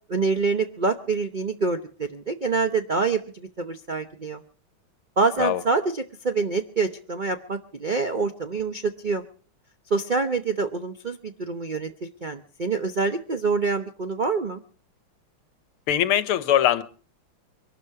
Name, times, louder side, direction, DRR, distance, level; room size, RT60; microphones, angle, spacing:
voice 1, 0.1-4.4 5.2-9.2 9.9-14.6, right 4 dB, 90° right, 8 dB, 0.4 m, -26 dB
voice 2, 15.9-16.8, left 11 dB, 85° left, 15 dB, 1.8 m, -21 dB
23.5 x 12.0 x 4.8 m, 0.42 s
omnidirectional pair, 2.3 m